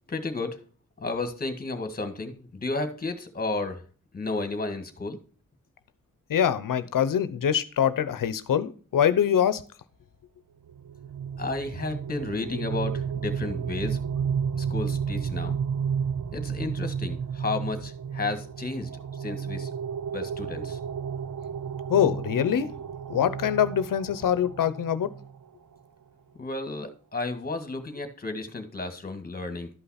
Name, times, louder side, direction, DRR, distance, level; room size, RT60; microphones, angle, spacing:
voice 1, 0.1-0.6 1.0-3.9 4.1-5.2 11.4-14.0 14.6-15.6 16.3-19.7 20.1-20.8 26.4-29.7, left 3 dB, 30° left, 7 dB, 1.8 m, -32 dB
voice 2, 6.3-9.6 21.9-22.7 23.1-25.1, left 9 dB, 85° left, 14 dB, 0.8 m, -24 dB
sound 1, 10.7-25.4, right 7 dB, 80° right, 0.9 m, -32 dB
12.5 x 5.6 x 4.2 m, 0.39 s
wide cardioid pair, 120°, 32 cm